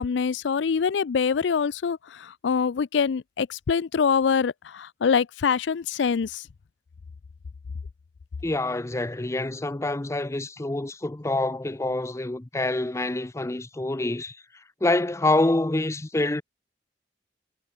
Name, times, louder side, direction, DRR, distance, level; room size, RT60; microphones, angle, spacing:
voice 1, 0.0-6.4, left 6 dB, 80° left, 0.4 m, -24 dB
voice 2, 8.4-14.4 14.8-16.4, left 2 dB, 15° left, 0.5 m, -26 dB
head